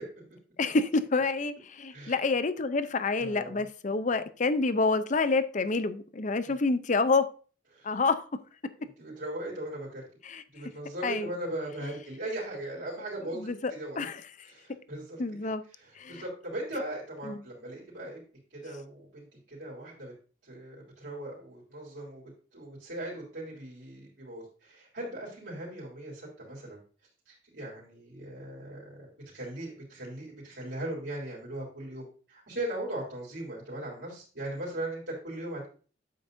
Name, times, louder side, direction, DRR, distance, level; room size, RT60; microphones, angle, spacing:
voice 1, 0.6-7.3 7.8-8.2 10.2-10.4 11.0-11.3 11.8-11.9 13.3-14.2 15.2-15.6 16.0-16.2 17.3-17.4, left 3 dB, 40° left, 0.6 m, -28 dB
voice 2, 3.2-3.6 6.4-6.5 7.7-7.9 8.8-10.0 10.5-14.1 14.5-15.2 15.8-18.2 18.5-20.1 20.4-26.8 27.3-29.0 29.3-35.7, right 1 dB, 70° right, 3.4 m, -39 dB
9.1 x 7.4 x 2.6 m
head